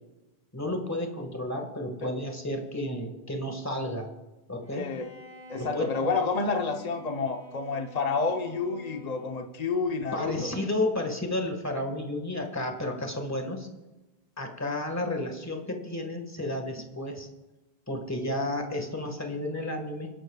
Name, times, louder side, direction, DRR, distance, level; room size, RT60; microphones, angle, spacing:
voice 1, 0.5-4.1 4.5-4.9 5.6-6.0 10.1-13.7 14.4-17.3 17.9-20.1, left 1 dB, 15° left, 4 dB, 1.6 m, -32 dB
Bowed string instrument, 4.6-9.7, equal, 90° right, 3.1 m, -49 dB
voice 2, 4.7-5.1 5.5-10.5, left 4 dB, 40° left, 5 dB, 1.0 m, -29 dB
28.5 x 11.5 x 2.4 m, 1.1 s
omnidirectional pair, 1.1 m